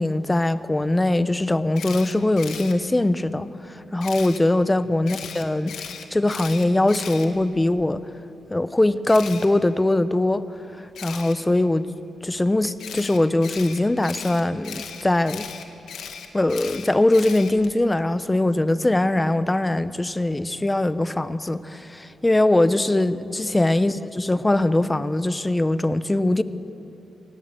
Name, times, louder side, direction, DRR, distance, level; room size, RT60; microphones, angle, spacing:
voice 1, 0.0-5.7 6.1-8.0 8.5-10.4 11.0-11.9 12.2-15.5 16.3-26.4, left 1 dB, 15° left, 13 dB, 0.8 m, -21 dB
Camera, 1.7-2.7 4.0-4.4 5.1-7.8 9.1-9.5 10.9-11.3 12.8-17.7, left 7 dB, 85° left, 1.8 m, -37 dB
27.0 x 18.0 x 7.6 m, 2.9 s
cardioid pair, 100°, 0 cm